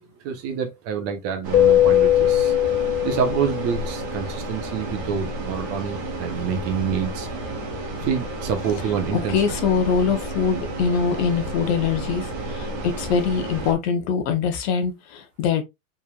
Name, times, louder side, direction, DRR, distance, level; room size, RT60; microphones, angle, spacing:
voice 1, 0.2-2.5 3.0-7.3 8.0-9.3, right 7 dB, 30° right, 0.9 m, -27 dB
sound 1, 1.4-13.7, right 2 dB, 15° right, 0.3 m, -32 dB
Keyboard (musical), 1.5-4.1, left 12 dB, 85° left, 2.0 m, -19 dB
voice 2, 9.1-15.6, left 6 dB, 40° left, 1.0 m, -23 dB
5.4 x 3.5 x 2.4 m
supercardioid pair, 150°, 48 cm